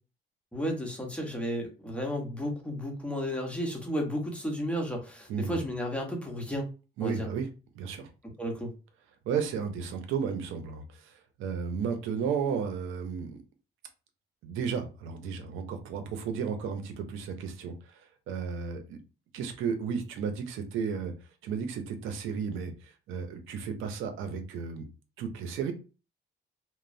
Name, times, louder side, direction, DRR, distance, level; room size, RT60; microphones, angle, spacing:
voice 1, 0.5-6.7 7.0-7.3 8.4-8.7, equal, 5° left, 1 dB, 0.9 m, -33 dB
voice 2, 5.3-5.6 7.0-7.5 7.7-8.1 9.3-13.4 14.4-19.0 19.3-21.1 21.4-24.8 25.2-25.7, right 6 dB, 90° right, 7 dB, 0.6 m, -33 dB
2.9 x 2.0 x 2.6 m, 0.32 s
cardioid pair, 90°, 20 cm